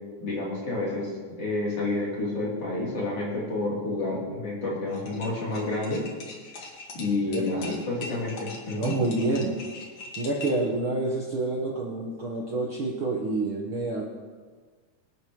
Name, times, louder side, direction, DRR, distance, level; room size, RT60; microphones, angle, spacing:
voice 1, 0.2-6.0 6.9-8.9, left 2 dB, 50° left, -6 dB, 4.2 m, -29 dB
sound 1, 4.9-10.7, left 3 dB, 65° left, 3.1 m, -42 dB
voice 2, 7.2-7.7 8.7-9.6 10.2-14.0, right 2 dB, 55° right, -1 dB, 1.6 m, -28 dB
24.0 x 9.2 x 3.1 m, 1.5 s
omnidirectional pair, 3.6 m